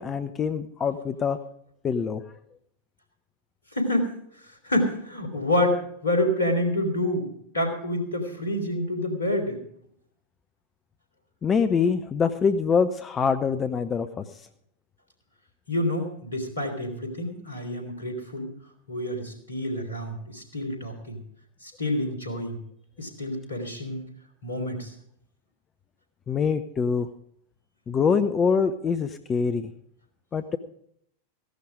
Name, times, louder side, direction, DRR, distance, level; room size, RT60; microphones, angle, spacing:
voice 1, 0.0-1.4 1.8-2.2 11.4-14.2 26.3-27.1 27.9-29.7 30.3-30.6, left 6 dB, 20° left, 10 dB, 0.7 m, -24 dB
voice 2, 3.7-4.1 4.5-9.6 15.7-18.5 18.9-21.2 21.6-22.6 23.0-24.1 24.4-24.9, left 1 dB, 75° left, 6 dB, 3.5 m, -28 dB
16.0 x 11.5 x 5.0 m, 0.69 s
figure-of-eight pair, 90°, 0 cm